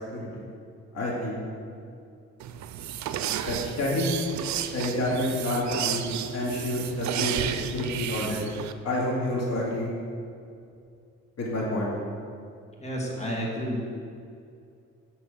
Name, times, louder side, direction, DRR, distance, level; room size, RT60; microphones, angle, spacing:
voice 1, 0.9-1.4 3.5-4.1 4.7-6.1 6.3-8.4 8.8-9.9 11.4-11.9, left 1 dB, 55° left, -5 dB, 2.4 m, -28 dB
sound 1, 2.4-8.7, right 10 dB, 70° right, 0.6 m, -32 dB
voice 2, 12.8-13.8, equal, 20° left, -2 dB, 2.3 m, -30 dB
7.8 x 5.8 x 6.4 m, 2.4 s
cardioid pair, 90°, 30 cm